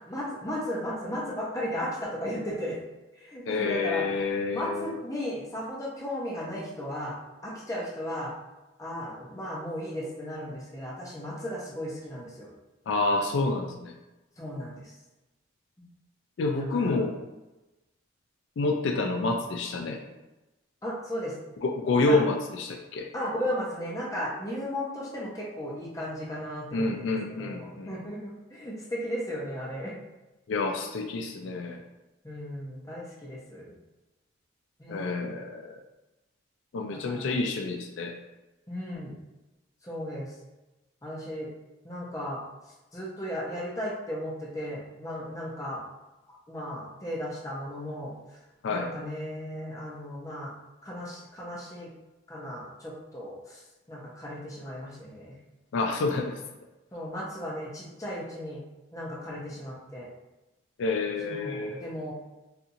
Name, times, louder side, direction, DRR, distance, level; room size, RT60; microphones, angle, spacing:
voice 1, 0.1-2.8 3.2-4.1 4.5-7.2 7.4-8.3 8.8-12.5 14.4-14.9 15.8-15.9 16.5-17.0 18.8-19.0 20.8-21.3 22.0-22.2 23.1-29.9 32.2-33.8 34.8-35.1 36.9-37.3 38.7-39.2 39.8-40.3 41.0-41.5 41.8-42.4 42.9-45.8 46.5-48.1 48.7-50.5 50.8-51.9 52.3-53.6 53.9-55.3 56.9-58.6 58.9-60.1 61.2-62.1, equal, 15° left, -4 dB, 0.7 m, -35 dB
voice 2, 3.5-4.9 12.9-13.9 16.4-17.1 18.6-20.0 21.6-23.1 26.7-27.9 30.5-31.8 34.9-35.7 36.7-38.1 48.6-48.9 55.7-56.3 60.8-61.9, left 3 dB, 70° left, 3 dB, 0.4 m, -28 dB
4.2 x 2.5 x 2.6 m, 1.1 s
head